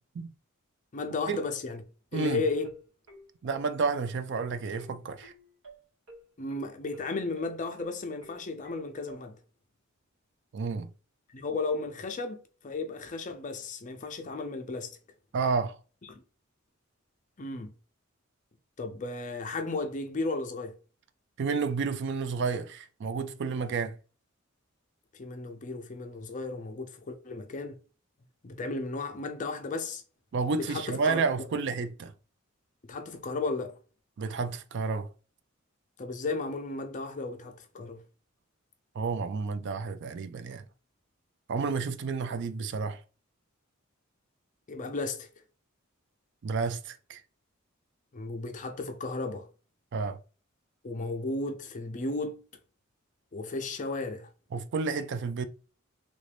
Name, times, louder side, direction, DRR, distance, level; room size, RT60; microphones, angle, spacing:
voice 1, 0.9-1.8 2.1-2.7 6.4-9.3 11.3-14.9 16.1-16.2 17.4-17.7 18.8-20.7 25.1-27.8 28.4-30.0 30.6-31.2 32.9-33.8 36.0-38.0 44.7-45.3 48.1-49.5 50.8-52.4 53.3-54.3, left 3 dB, 40° left, 0.5 m, -34 dB
voice 2, 2.1-2.4 3.4-5.3 10.5-10.9 15.3-15.8 21.4-24.0 30.3-32.1 34.2-35.1 39.0-40.6 41.5-43.0 46.4-47.2 49.9-50.2 54.5-55.5, right 4 dB, 60° right, 0.4 m, -30 dB
sound 1, 2.2-9.2, right 1 dB, 75° right, 1.9 m, -51 dB
3.3 x 2.5 x 3.3 m
head